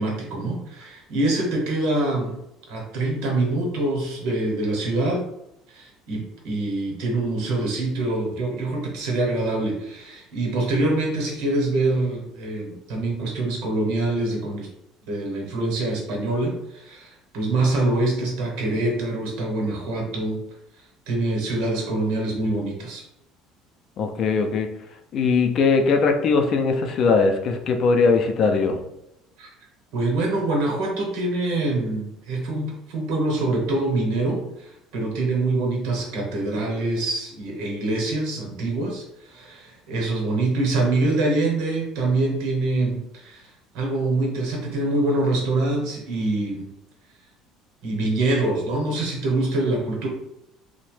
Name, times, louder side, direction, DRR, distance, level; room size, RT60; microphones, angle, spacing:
voice 1, 0.0-2.4 2.7-5.2 5.7-14.7 15.1-20.4 21.1-23.0 29.4-29.5 29.9-46.7 47.8-50.1, right 2 dB, 80° right, 0 dB, 0.9 m, -25 dB
voice 2, 24.0-24.7 25.1-28.8, left 4 dB, 45° left, 5 dB, 0.4 m, -20 dB
2.8 x 2.1 x 3.1 m, 0.83 s
cardioid pair, 140°, 0 cm